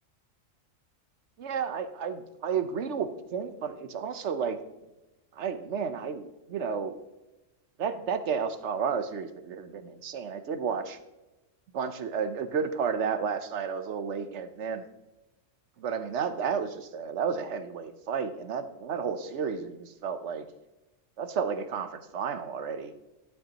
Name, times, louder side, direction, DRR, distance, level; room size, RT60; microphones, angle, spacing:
voice 1, 1.4-4.6 5.3-7.0 7.8-11.0 11.7-14.9 15.8-20.5 21.2-22.9, right 6 dB, 65° right, 10 dB, 1.1 m, -32 dB
12.0 x 7.7 x 2.9 m, 0.99 s
omnidirectional pair, 1.3 m